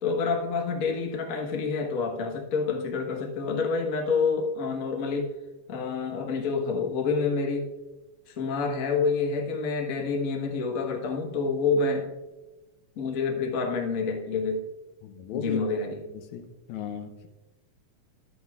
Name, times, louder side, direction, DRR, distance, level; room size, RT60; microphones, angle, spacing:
voice 1, 0.0-5.3 5.7-7.7 8.3-12.1 13.0-14.6 15.3-16.0, left 4 dB, 50° left, 1 dB, 1.0 m, -28 dB
voice 2, 15.0-15.6 16.1-17.3, left 7 dB, 80° left, 7 dB, 2.1 m, -37 dB
11.5 x 9.5 x 2.4 m, 1.1 s
omnidirectional pair, 3.3 m